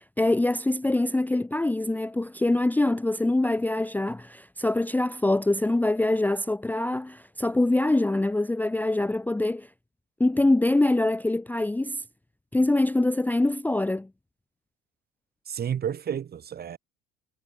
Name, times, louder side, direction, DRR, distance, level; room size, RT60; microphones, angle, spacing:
voice 1, 0.0-9.7 10.2-12.0 12.5-14.1, left 2 dB, 5° left, 0.7 m, -24 dB
voice 2, 15.5-16.8, right 8 dB, 30° right, 1.2 m, -31 dB
hypercardioid pair, 70°, 31 cm